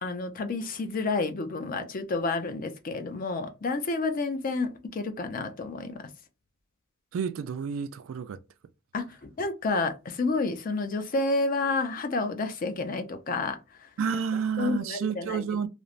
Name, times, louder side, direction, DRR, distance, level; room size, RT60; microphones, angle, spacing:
voice 1, 0.0-6.0 8.9-13.6 14.6-15.4, left 3 dB, 45° left, 0.4 m, -30 dB
voice 2, 7.1-8.4 14.0-15.7, right 6 dB, 75° right, 0.3 m, -30 dB
3.0 x 2.0 x 2.4 m
head